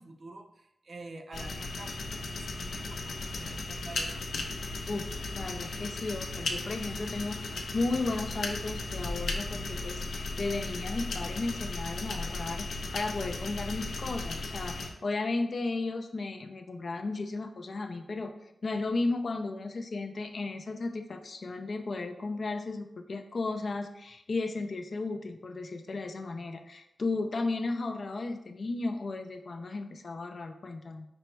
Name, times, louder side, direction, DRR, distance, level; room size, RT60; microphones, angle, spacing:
voice 1, 0.0-4.1, right 2 dB, 55° right, 4 dB, 0.4 m, -47 dB
sound 1, 1.3-14.9, left 3 dB, 90° left, 0.6 m, -36 dB
voice 2, 4.9-31.1, left 3 dB, 50° left, 5 dB, 0.4 m, -34 dB
5.0 x 2.2 x 4.4 m, 0.84 s
wide cardioid pair, 120°, 0 cm